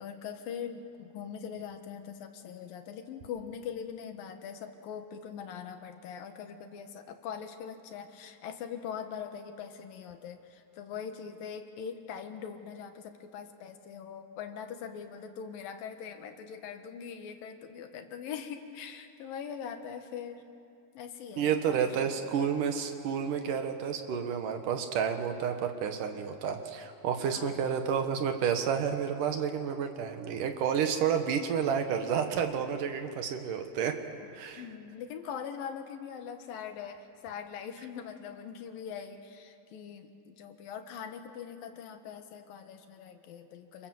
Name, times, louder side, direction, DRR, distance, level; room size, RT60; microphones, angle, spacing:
voice 1, 0.0-20.4 20.9-22.3 27.3-27.7 34.6-43.9, left 7 dB, 90° left, 6 dB, 3.2 m, -42 dB
voice 2, 21.4-34.0 34.3-34.6, right 7 dB, 70° right, 6 dB, 3.0 m, -30 dB
28.0 x 26.5 x 7.8 m, 2.5 s
omnidirectional pair, 3.9 m